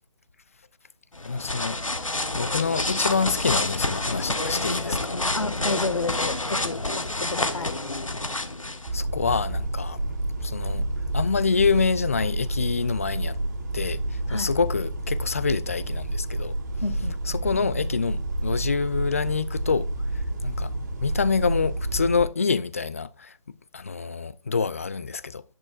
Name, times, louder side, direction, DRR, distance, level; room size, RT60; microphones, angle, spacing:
sound 1, 1.1-8.9, left 2 dB, 90° left, 1.2 m, -28 dB
voice 1, 1.2-1.8 2.4-5.2 8.9-10.0 10.4-10.9 11.1-13.4 13.7-16.5 17.3-19.9 20.1-20.7 21.0-23.4 23.7-25.4, left 5 dB, 25° left, 0.4 m, -26 dB
voice 2, 5.3-7.7 14.3-14.5 16.8-17.2, left 3 dB, 65° left, 2.0 m, -30 dB
sound 2, 8.8-22.2, right 1 dB, 35° right, 2.1 m, -29 dB
10.5 x 9.2 x 2.5 m
figure-of-eight pair, 155°, 16 cm